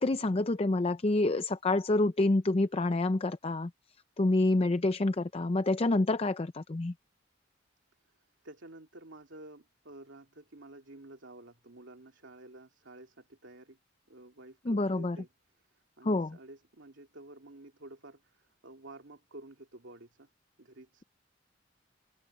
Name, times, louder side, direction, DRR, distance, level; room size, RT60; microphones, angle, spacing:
voice 1, 0.0-3.7 4.2-6.9 14.7-15.2 16.0-16.4, left 2 dB, 30° left, 0.6 m, -27 dB
voice 2, 8.0-13.8 14.1-15.3 15.6-20.3 20.6-21.0, right 2 dB, 80° right, 2.5 m, -51 dB
head